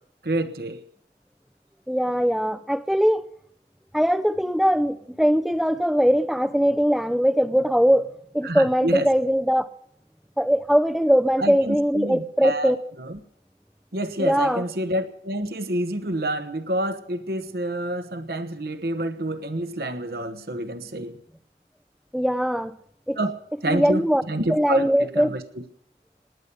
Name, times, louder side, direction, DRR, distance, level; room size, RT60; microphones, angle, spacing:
voice 1, 0.2-0.8 8.4-9.1 11.4-13.1 13.9-21.2 23.2-25.4, right 1 dB, 55° right, 1.2 m, -28 dB
voice 2, 1.9-3.3 3.9-8.1 8.3-9.7 10.4-12.8 14.2-14.6 22.1-22.7 23.1-23.2 23.7-24.2 24.5-25.3, equal, ahead, 0.7 m, -21 dB
18.5 x 9.9 x 6.9 m
head